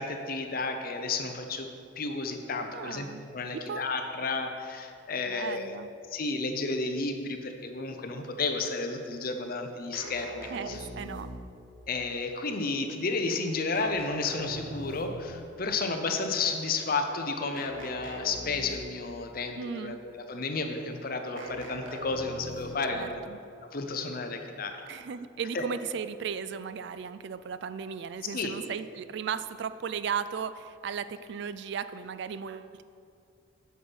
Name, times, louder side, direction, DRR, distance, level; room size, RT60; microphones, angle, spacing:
voice 1, 0.0-1.7 2.0-3.1 3.3-5.8 6.1-10.9 11.9-23.2 23.7-24.8 25.5-25.6 28.2-28.5, left 3 dB, 45° left, 5 dB, 0.7 m, -32 dB
voice 2, 2.7-3.2 3.5-3.8 5.3-5.9 10.5-11.3 19.6-20.0 22.9-23.4 24.9-32.8, right 6 dB, 60° right, 13 dB, 0.3 m, -36 dB
sound 1, 9.9-11.7 13.7-15.4 17.5-19.1 21.4-23.0, equal, 75° right, 1.4 m, -42 dB
8.2 x 5.6 x 6.2 m, 2.5 s
head